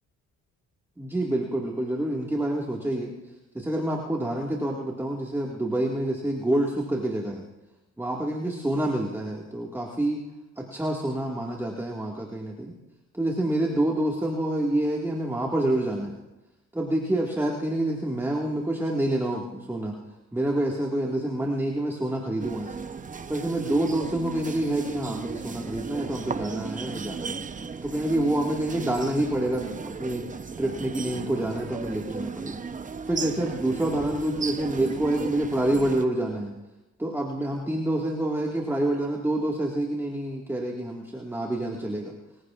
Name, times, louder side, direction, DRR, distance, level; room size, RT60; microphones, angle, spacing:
voice 1, 1.0-3.1 3.5-7.5 8.0-10.2 10.6-12.7 13.1-16.2 16.7-19.9 20.3-22.8 23.3-27.4 27.8-30.2 30.6-32.6 33.0-36.5 37.0-42.1, right 1 dB, 10° right, -1 dB, 1.9 m, -27 dB
sound 1, 22.4-36.1, right 5 dB, 25° right, 0.8 m, -36 dB
29.0 x 16.0 x 2.5 m, 1.1 s
cardioid pair, 90°, 30 cm